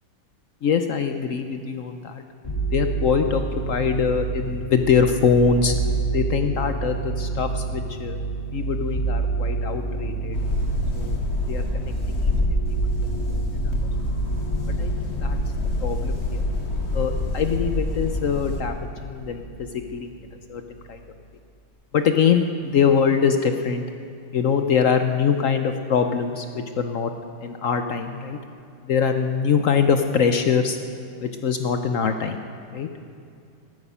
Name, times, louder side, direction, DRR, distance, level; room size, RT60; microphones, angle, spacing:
voice 1, 0.6-2.2 2.7-5.7 6.1-8.2 8.5-10.4 10.9-11.2 11.5-12.3 12.7-12.8 13.3-13.7 14.8-15.4 15.8-16.5 16.9-19.4 19.9-20.1 20.5-20.6 20.9-21.0 21.9-23.8 24.3-27.1 27.4-28.4 28.8-30.8 31.2-32.4 32.7-32.9, left 6 dB, 65° left, 7 dB, 0.8 m, -23 dB
sound 1, 2.4-19.9 20.2-21.0, right 4 dB, 20° left, 3.4 m, -29 dB
sound 2, 10.3-18.6, left 2 dB, 35° left, 1.5 m, -27 dB
14.5 x 13.0 x 5.6 m, 2.5 s
omnidirectional pair, 2.0 m